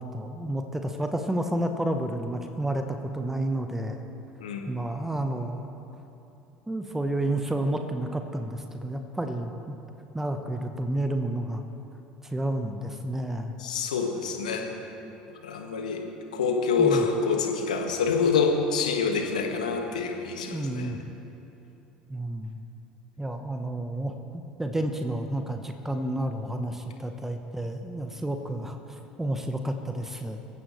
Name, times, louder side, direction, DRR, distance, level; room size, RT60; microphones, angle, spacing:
voice 1, 0.0-4.0 4.7-5.7 6.7-9.8 10.1-11.6 12.2-13.5 16.8-17.0 20.5-21.0 22.1-22.6 23.2-28.8 29.2-30.4, right 1 dB, 10° right, 6 dB, 1.1 m, -30 dB
voice 2, 13.6-14.7 15.3-16.0 16.3-20.9, left 5 dB, 70° left, 3 dB, 1.8 m, -26 dB
24.5 x 15.0 x 3.3 m, 2.9 s
figure-of-eight pair, 65°, 4 cm